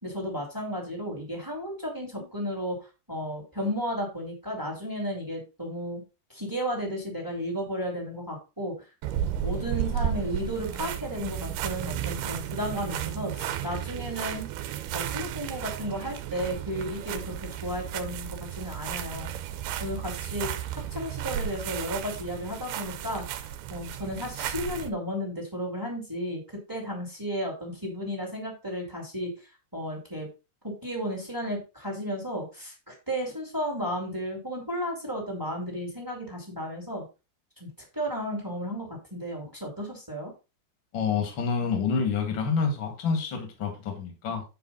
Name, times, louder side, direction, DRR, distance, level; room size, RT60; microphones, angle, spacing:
voice 1, 0.0-6.0 6.3-8.9 9.3-14.5 14.9-19.3 19.8-23.2 23.7-29.3 29.7-30.3 30.6-37.0 37.6-40.3, equal, 5° right, 1.8 m, -33 dB
sound 1, 9.0-24.9, right 10 dB, 80° right, 2.7 m, -33 dB
voice 2, 40.9-44.4, left 5 dB, 40° left, 2.1 m, -28 dB
9.6 x 5.1 x 4.0 m
omnidirectional pair, 4.6 m